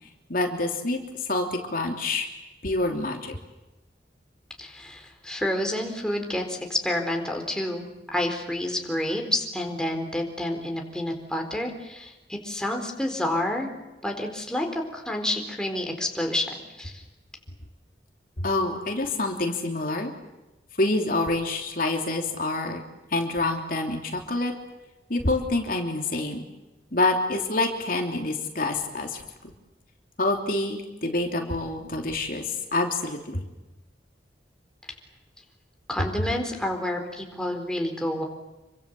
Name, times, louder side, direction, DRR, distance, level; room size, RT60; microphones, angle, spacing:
voice 1, 0.3-2.3 2.6-3.4 18.4-20.1 20.8-22.8 23.1-24.5 25.1-26.4 26.9-29.2 30.2-33.4, left 2 dB, 55° left, 2 dB, 3.2 m, -27 dB
voice 2, 4.6-13.7 14.0-16.5 16.8-17.0 35.9-38.2, left 1 dB, 5° left, 2 dB, 4.2 m, -29 dB
28.5 x 24.5 x 7.8 m, 1.0 s
head